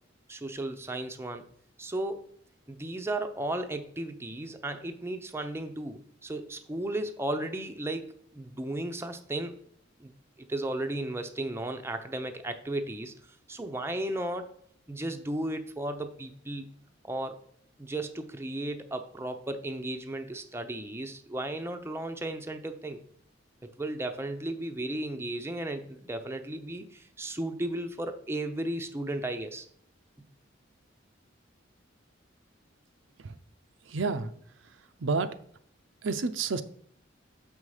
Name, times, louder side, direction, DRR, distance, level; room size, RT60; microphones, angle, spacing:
voice 1, 0.3-1.4 1.8-2.3 2.7-9.6 10.0-10.1 10.4-13.1 13.5-14.5 14.9-16.7 17.0-17.4 17.8-23.0 23.6-29.7, right 1 dB, 15° right, 6 dB, 0.6 m, -35 dB
voice 2, 33.9-34.3 35.0-35.3 36.0-36.6, right 4 dB, 70° right, 10 dB, 0.6 m, -29 dB
7.0 x 5.5 x 4.8 m, 0.64 s
head